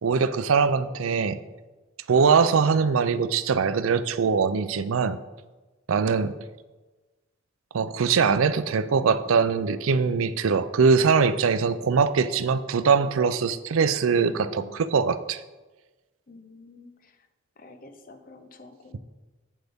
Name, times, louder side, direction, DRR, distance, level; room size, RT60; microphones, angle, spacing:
voice 1, 0.0-1.4 2.1-5.2 5.9-6.3 7.7-15.4, right 5 dB, 85° right, 14 dB, 0.5 m, -22 dB
voice 2, 14.2-14.8 16.3-17.2 17.6-19.0, left 2 dB, 45° left, 8 dB, 0.7 m, -47 dB
8.2 x 7.7 x 3.6 m, 1.2 s
head